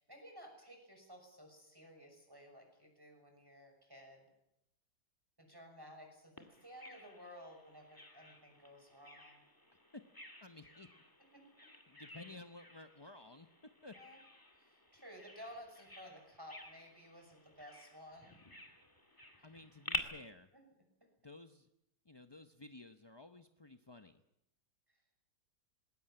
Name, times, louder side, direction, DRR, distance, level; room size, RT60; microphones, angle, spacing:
voice 1, 0.0-4.3 5.4-9.4 11.3-11.4 13.9-14.2 14.6-18.4 19.4-19.5 24.9-25.0, equal, 10° right, 3 dB, 6.3 m, -55 dB
Bird vocalization bird call bird song, 6.4-20.0, left 1 dB, 10° left, 1.9 m, -50 dB
voice 2, 10.4-10.9 11.9-13.5 13.8-13.9 19.1-20.5 21.2-21.7 22.0-24.2, left 2 dB, 30° left, 8 dB, 0.4 m, -54 dB
20.5 x 18.5 x 8.8 m, 0.84 s
omnidirectional pair, 1.8 m